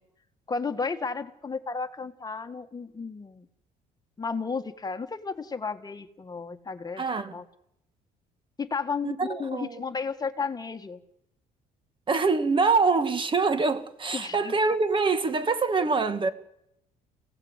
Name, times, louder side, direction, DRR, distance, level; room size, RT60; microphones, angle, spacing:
voice 1, 0.5-3.5 4.2-7.0 7.3-7.4 8.6-11.0 14.1-14.5, left 5 dB, 25° left, 1.8 m, -33 dB
voice 2, 7.0-7.4 9.0-9.8 12.1-16.3, right 4 dB, 30° right, 2.0 m, -25 dB
29.5 x 17.0 x 8.3 m
cardioid pair, 110°, 17 cm